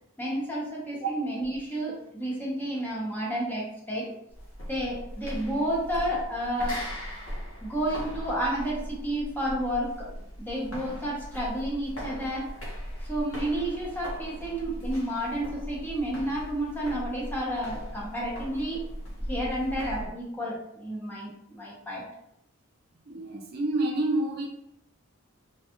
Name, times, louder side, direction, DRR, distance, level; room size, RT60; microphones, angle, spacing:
voice 1, 0.2-4.1 4.7-6.8 7.6-10.1 10.4-12.5 13.0-18.9 19.3-22.1, right 1 dB, 10° left, -5 dB, 0.7 m, -31 dB
sound 1, 4.3-20.1, equal, 60° left, 0.9 m, -39 dB
voice 2, 23.1-24.5, right 2 dB, 45° right, -1 dB, 0.4 m, -28 dB
3.2 x 2.3 x 2.8 m, 0.77 s
head